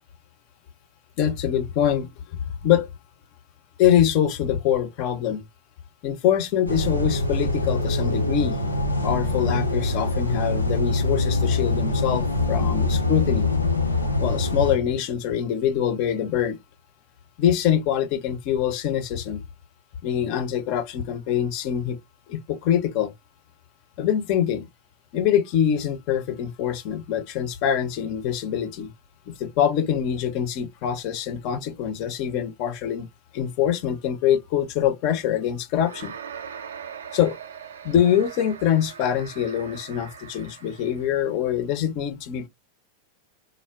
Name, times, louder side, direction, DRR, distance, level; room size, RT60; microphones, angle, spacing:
voice 1, 1.2-2.1 2.6-2.9 3.8-5.4 6.0-8.6 9.0-13.5 14.2-16.6 17.4-19.4 20.0-22.0 22.3-23.1 24.0-24.7 25.1-28.9 29.3-33.1 33.3-36.1 37.1-37.4 37.8-42.5, left 9 dB, 45° left, 0.6 m, -24 dB
sound 1, 6.7-14.8, left 2 dB, 85° left, 0.6 m, -24 dB
sound 2, 35.8-41.1, right 8 dB, 65° right, 0.4 m, -41 dB
3.4 x 2.1 x 2.2 m
figure-of-eight pair, 90°, 0 cm